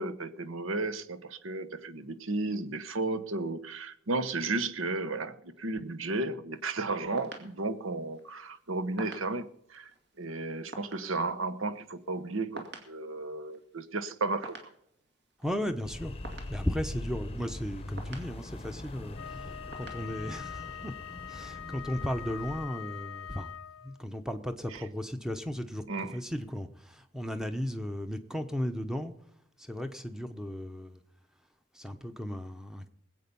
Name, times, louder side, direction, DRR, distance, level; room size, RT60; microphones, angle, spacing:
voice 1, 0.0-9.9 10.2-14.7 24.7-24.8 25.9-26.2, right 3 dB, 75° right, 1.0 m, -34 dB
sound 1, 6.5-23.1, right 2 dB, 50° right, 2.3 m, -52 dB
voice 2, 15.4-16.1 16.5-19.4 19.8-20.9 21.3-23.5 23.8-29.1 29.6-31.0 31.7-32.9, equal, 5° right, 0.8 m, -35 dB
sound 2, 15.8-22.7, left 1 dB, 25° left, 0.8 m, -42 dB
Wind instrument woodwind instrument, 19.1-24.0, left 9 dB, 85° left, 0.5 m, -43 dB
20.5 x 8.4 x 5.4 m
head